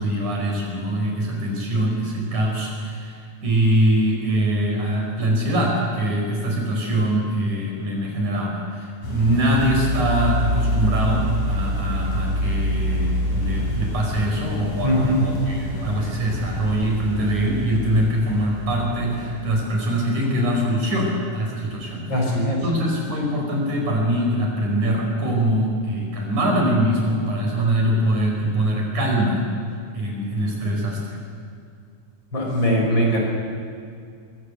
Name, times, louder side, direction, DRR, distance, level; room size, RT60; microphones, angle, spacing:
voice 1, 0.0-22.1 22.6-29.5 29.9-31.2, right 1 dB, 70° right, 0 dB, 6.7 m, -23 dB
sound 1, 9.0-19.6, equal, 70° left, 6.6 m, -27 dB
voice 2, 14.8-15.2 22.1-22.6 32.3-33.2, equal, 35° left, -1 dB, 5.8 m, -20 dB
25.5 x 22.5 x 8.1 m, 2.3 s
omnidirectional pair, 3.6 m